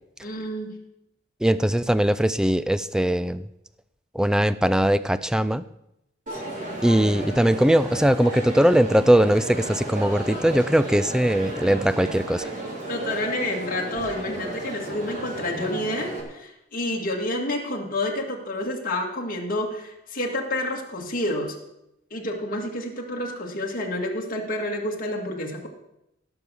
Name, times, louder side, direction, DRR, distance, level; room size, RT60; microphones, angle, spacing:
voice 1, 0.2-0.8 6.3-6.4 12.9-21.6 22.1-25.7, left 1 dB, 45° left, 0 dB, 2.0 m, -29 dB
voice 2, 1.4-3.5 4.1-5.6 6.8-12.5, right 1 dB, 5° right, 14 dB, 0.3 m, -20 dB
Crowd, 6.3-16.2, right 1 dB, 40° right, 3.3 m, -33 dB
16.0 x 6.2 x 6.9 m, 0.85 s
head